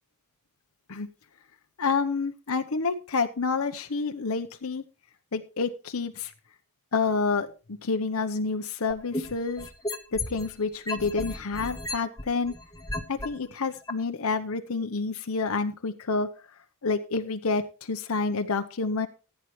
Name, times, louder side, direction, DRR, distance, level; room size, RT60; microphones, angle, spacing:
voice 1, 1.8-4.8 5.3-6.3 6.9-9.7 10.1-12.5 13.1-16.3 16.8-19.1, left 4 dB, 75° left, 7 dB, 0.9 m, -28 dB
sound 1, 8.9-10.5 10.9-13.3 13.9-14.0, left 2 dB, 15° left, 1.2 m, -33 dB
15.5 x 9.1 x 3.1 m, 0.33 s
head